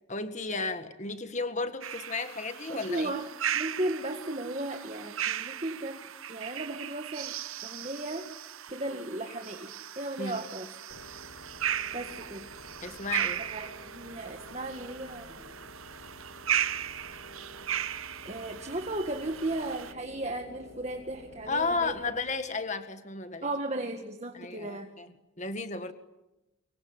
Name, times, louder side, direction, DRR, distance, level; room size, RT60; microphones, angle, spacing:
voice 1, 0.1-3.1 10.2-10.4 12.8-13.4 21.5-23.5 24.3-25.1 25.4-25.9, left 3 dB, 35° left, 9 dB, 1.8 m, -33 dB
sound 1, 1.8-19.9, right 10 dB, 85° right, 0.9 m, -37 dB
voice 2, 2.7-3.3 3.5-8.3 8.7-10.7 11.9-12.5 13.5-15.5 18.2-22.0 23.4-24.9, right 1 dB, 30° right, 4 dB, 1.7 m, -36 dB
sound 2, 10.9-22.6, left 1 dB, 80° left, 2.5 m, -50 dB
25.5 x 23.0 x 10.0 m, 0.96 s
head